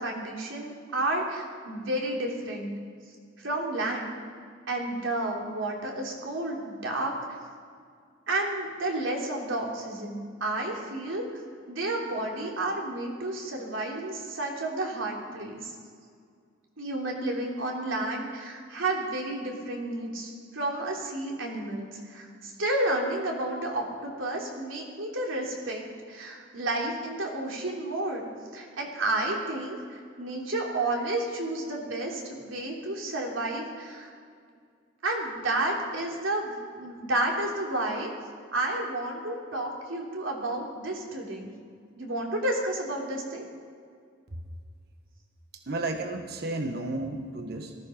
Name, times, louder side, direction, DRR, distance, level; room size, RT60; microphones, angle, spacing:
voice 1, 0.0-2.7 3.4-4.1 4.7-7.2 8.3-11.2 11.7-15.7 16.8-28.3 28.5-34.1 35.0-38.1 38.5-41.5 42.0-43.5, right 2 dB, 85° right, -1 dB, 3.2 m, -31 dB
voice 2, 45.5-47.7, right 2 dB, 55° right, 5 dB, 1.2 m, -32 dB
19.0 x 14.0 x 5.2 m, 2.1 s
head